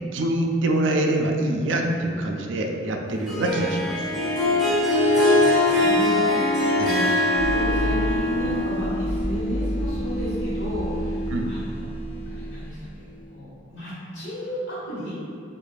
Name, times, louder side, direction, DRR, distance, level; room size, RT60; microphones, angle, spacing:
voice 1, 0.1-4.0 6.8-6.9 11.3-11.6, right 1 dB, 85° right, 3 dB, 0.4 m, -24 dB
Harp, 3.3-9.1, left 1 dB, ahead, 0.7 m, -22 dB
voice 2, 4.4-7.1 7.5-11.9 12.3-15.2, equal, 80° left, -9 dB, 1.4 m, -34 dB
sound 1, 7.3-13.2, equal, 50° left, 0.8 m, -28 dB
4.4 x 2.5 x 2.4 m, 2.3 s
head